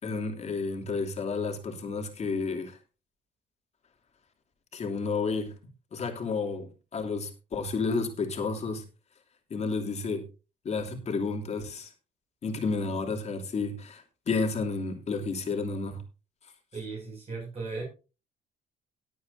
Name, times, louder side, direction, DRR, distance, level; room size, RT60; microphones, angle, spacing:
voice 1, 0.0-2.8 4.7-5.5 5.9-8.8 9.5-10.2 10.6-11.9 12.4-16.0, left 4 dB, 40° left, 2 dB, 2.9 m, -31 dB
voice 2, 16.7-17.8, right 3 dB, 35° right, -4 dB, 6.4 m, -36 dB
19.5 x 8.5 x 2.7 m, 0.32 s
cardioid pair, 110°, 17 cm